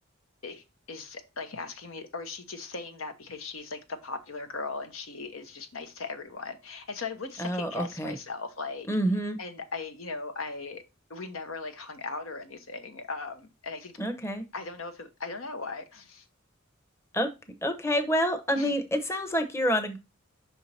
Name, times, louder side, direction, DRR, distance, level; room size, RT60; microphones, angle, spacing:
voice 1, 0.4-8.9 9.4-10.8 11.1-14.0 14.5-16.3 18.6-18.7, left 4 dB, 75° left, 1.0 m, -38 dB
voice 2, 7.4-8.1 8.9-9.4 14.0-14.4 17.1-17.3 17.6-20.0, equal, 15° left, 0.9 m, -28 dB
5.7 x 4.6 x 4.2 m
head